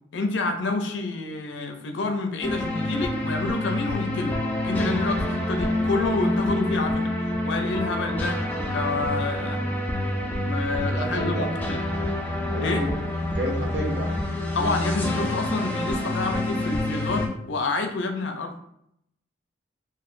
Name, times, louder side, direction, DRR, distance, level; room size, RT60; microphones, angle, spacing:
voice 1, 0.1-4.4 4.6-7.1 7.4-8.4 8.7-9.6 10.4-11.8 12.6-12.8 14.5-18.5, left 3 dB, 75° left, 5 dB, 0.4 m, -28 dB
sound 1, 2.4-17.3, left 1 dB, 10° left, 0.3 m, -27 dB
voice 2, 10.8-11.5 12.5-12.8 13.3-14.2, right 1 dB, 70° right, 0 dB, 0.7 m, -30 dB
3.1 x 2.4 x 2.5 m, 0.75 s
head